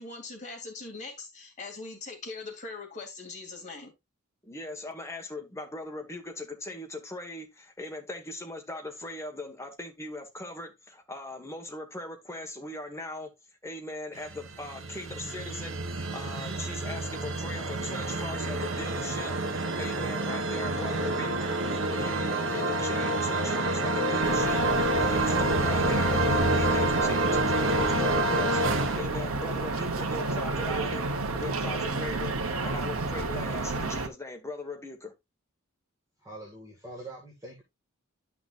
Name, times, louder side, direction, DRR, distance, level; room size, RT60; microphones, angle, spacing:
voice 1, 0.0-3.9, left 3 dB, 35° left, 2.8 m, -41 dB
voice 2, 4.4-13.3 13.6-31.0 31.3-35.1, left 2 dB, 15° left, 1.5 m, -40 dB
sound 1, 14.3-29.0, right 2 dB, 65° right, 1.1 m, -28 dB
sound 2, 24.2-34.1, right 3 dB, 85° right, 1.2 m, -31 dB
voice 3, 36.2-37.6, right 2 dB, 15° right, 1.9 m, -44 dB
11.0 x 6.0 x 2.5 m
head